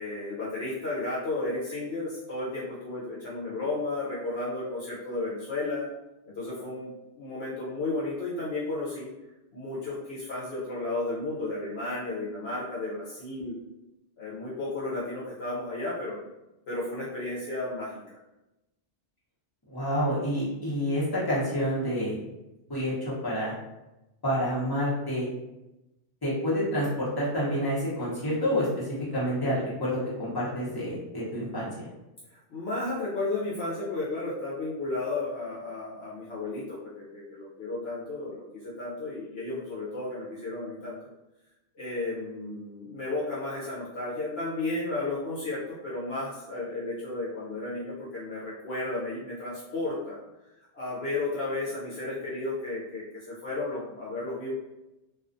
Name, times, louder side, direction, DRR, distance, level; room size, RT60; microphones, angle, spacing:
voice 1, 0.0-5.9 6.3-9.1 9.5-13.6 14.2-16.2 16.7-18.2 32.3-41.0 41.8-50.2 50.7-54.5, left 2 dB, 65° left, -7 dB, 0.9 m, -33 dB
voice 2, 19.7-22.2 22.7-23.5 24.2-25.3 26.2-31.9, equal, 20° left, -8 dB, 0.8 m, -28 dB
2.4 x 2.3 x 2.5 m, 0.96 s
omnidirectional pair, 1.2 m